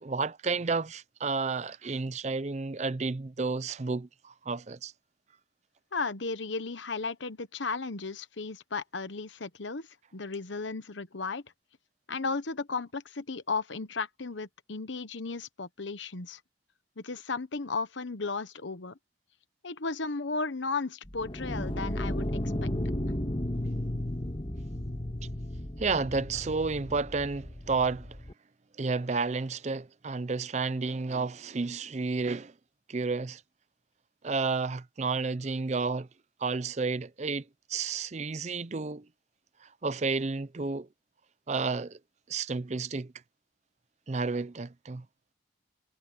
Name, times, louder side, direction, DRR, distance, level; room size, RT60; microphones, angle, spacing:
voice 1, 0.0-4.9 25.8-28.2 28.8-32.5 32.9-33.4 34.2-36.1 36.4-37.4 37.7-39.1 39.6-40.9 41.5-42.0 42.3-43.1 44.1-45.0, right 4 dB, 35° right, 0.5 m, -31 dB
voice 2, 5.9-11.4 12.1-16.4 17.0-19.0 19.6-22.3 22.6-22.7, left 4 dB, 75° left, 1.1 m, -35 dB
sound 1, 21.1-28.3, left 1 dB, 30° left, 1.6 m, -34 dB
head